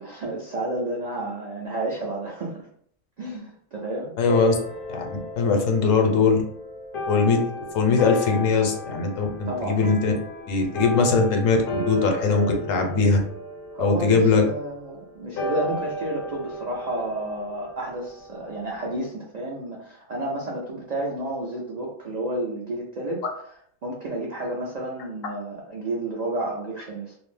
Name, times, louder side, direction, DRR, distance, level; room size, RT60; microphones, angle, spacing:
voice 1, 0.0-2.7 3.2-4.1 9.5-9.8 13.7-23.2 23.8-27.2, right 1 dB, 75° right, -3 dB, 0.3 m, -31 dB
voice 2, 4.2-4.5 4.9-6.4 7.1-7.4 7.7-10.1 10.5-11.6 11.8-13.2 13.8-14.4, left 4 dB, 80° left, 3 dB, 1.0 m, -21 dB
sound 1, 4.3-19.0, left 1 dB, 60° left, 0.6 m, -35 dB
2.4 x 2.0 x 3.1 m, 0.63 s
omnidirectional pair, 1.4 m